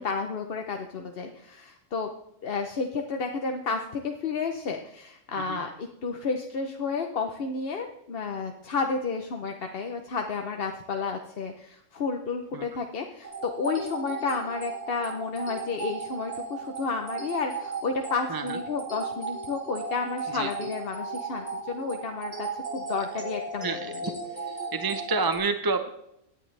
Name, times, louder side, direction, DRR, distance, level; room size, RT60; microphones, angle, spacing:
voice 1, 0.0-2.1 2.4-23.8, left 4 dB, 50° left, 4 dB, 1.0 m, -31 dB
sound 1, 13.2-25.4, right 4 dB, 55° right, 3.5 m, -36 dB
voice 2, 23.6-24.1 24.7-25.9, right 4 dB, 25° right, 8 dB, 0.5 m, -29 dB
18.0 x 10.0 x 3.3 m, 0.79 s
omnidirectional pair, 1.4 m